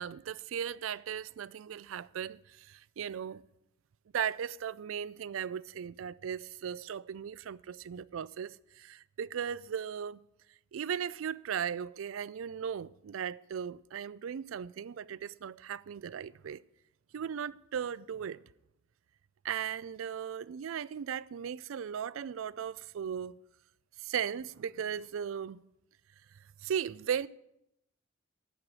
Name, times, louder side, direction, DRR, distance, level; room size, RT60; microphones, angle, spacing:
voice 1, 0.0-3.4 4.1-10.2 10.7-16.6 17.1-18.4 19.4-23.4 24.0-25.6 26.6-27.3, right 8 dB, 80° right, 0.4 m, -37 dB
14.5 x 4.9 x 8.8 m
head